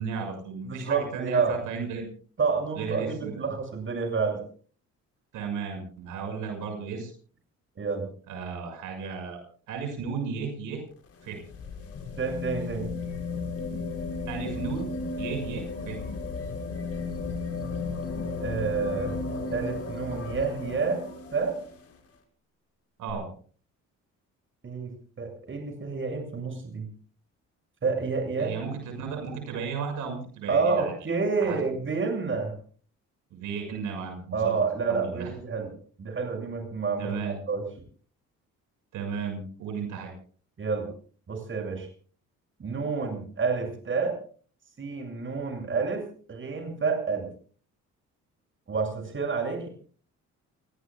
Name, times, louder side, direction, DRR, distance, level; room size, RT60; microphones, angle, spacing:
voice 1, 0.0-2.1 2.8-3.4 5.3-7.1 8.3-9.4 9.7-10.8 11.2-11.4 14.3-14.9 15.2-16.0 23.0-23.3 28.4-30.9 31.4-31.6 33.3-34.6 34.9-35.3 37.0-37.4 38.9-40.1, right 5 dB, 90° right, 4 dB, 6.6 m, -34 dB
voice 2, 0.7-1.6 2.4-4.4 7.8-8.1 12.2-12.9 18.4-19.1 19.5-21.0 21.3-21.6 24.6-26.9 27.8-28.5 30.5-32.5 34.3-35.7 36.0-37.6 40.6-40.9 41.3-41.9 42.6-44.2 44.8-47.3 48.7-49.7, right 5 dB, 40° right, 4 dB, 7.4 m, -29 dB
sound 1, 10.9-21.9 23.1-23.2, left 3 dB, 50° left, 6.1 m, -34 dB
29.5 x 18.0 x 2.4 m, 0.42 s
cardioid pair, 90°, 30 cm